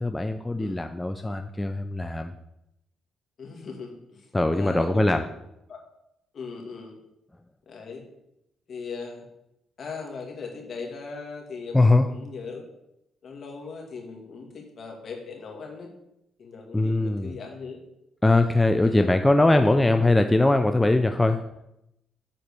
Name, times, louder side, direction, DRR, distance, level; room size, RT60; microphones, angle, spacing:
voice 1, 0.0-2.3 4.3-5.2 11.7-12.1 16.7-17.4 18.2-21.4, left 2 dB, 10° left, 7 dB, 0.5 m, -21 dB
voice 2, 3.4-5.2 5.7-5.8 6.3-7.0 7.7-8.0 8.7-9.3 9.8-12.7 13.2-15.9 16.4-17.8 18.4-19.7, left 4 dB, 55° left, 1 dB, 2.3 m, -39 dB
7.9 x 4.3 x 6.9 m, 0.83 s
cardioid pair, 90°, 0 cm